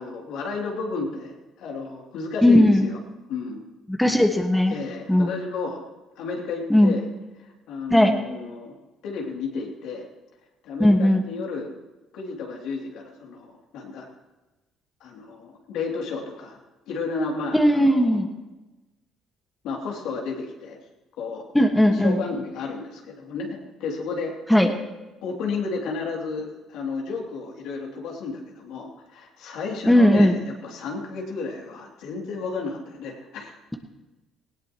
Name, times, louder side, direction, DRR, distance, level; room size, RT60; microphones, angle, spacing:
voice 1, 0.0-3.0 3.3-3.6 4.7-5.8 6.2-7.0 7.4-8.8 9.0-10.1 10.6-11.7 12.1-14.1 15.0-16.6 16.9-18.2 19.6-20.8 21.2-21.5 21.9-24.3 25.2-33.6, left 4 dB, 75° left, -1 dB, 3.0 m, -32 dB
voice 2, 2.4-2.9 3.9-4.7 5.1-5.3 6.7-7.0 7.9-8.1 10.8-11.2 17.5-18.3 21.5-22.2 24.5-24.7 29.9-30.3, left 1 dB, 5° left, 4 dB, 1.7 m, -17 dB
19.0 x 17.0 x 3.1 m, 1.1 s
supercardioid pair, 70°, 0 cm